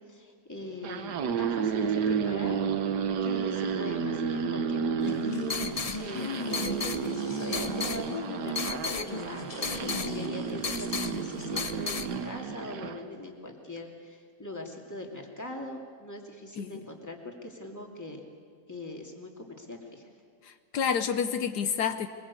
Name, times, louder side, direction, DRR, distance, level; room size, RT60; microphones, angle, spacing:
voice 1, 0.0-2.6 3.2-5.3 6.0-18.2 18.7-20.1, left 1 dB, 10° left, 1 dB, 2.5 m, -41 dB
sound 1, 0.7-13.0, right 6 dB, 85° right, 1.6 m, -32 dB
sound 2, 5.0-12.1, left 4 dB, 35° left, 0.6 m, -35 dB
voice 2, 6.1-6.6 16.6-16.7 20.4-22.1, left 7 dB, 80° left, 9 dB, 1.4 m, -30 dB
23.0 x 21.5 x 8.4 m, 2.1 s
omnidirectional pair, 1.7 m